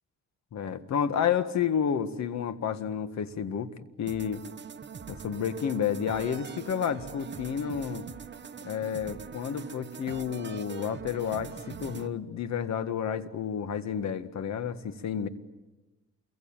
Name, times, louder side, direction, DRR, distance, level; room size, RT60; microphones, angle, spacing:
voice 1, 0.5-3.7 4.0-4.4 5.1-8.1 8.6-15.3, left 8 dB, 65° left, 12 dB, 1.8 m, -30 dB
sound 1, 4.1-12.1, right 7 dB, 35° right, 1.2 m, -43 dB
28.0 x 23.0 x 9.0 m, 1.1 s
cardioid pair, 90°, 30 cm